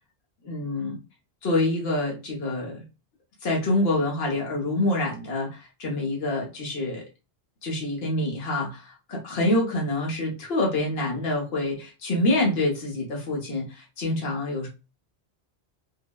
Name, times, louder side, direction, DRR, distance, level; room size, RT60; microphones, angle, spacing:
voice 1, 0.4-1.0 1.4-2.8 3.4-7.0 7.6-14.7, left 2 dB, 65° left, -1 dB, 1.2 m, -26 dB
3.7 x 2.1 x 2.2 m, 0.29 s
omnidirectional pair, 1.1 m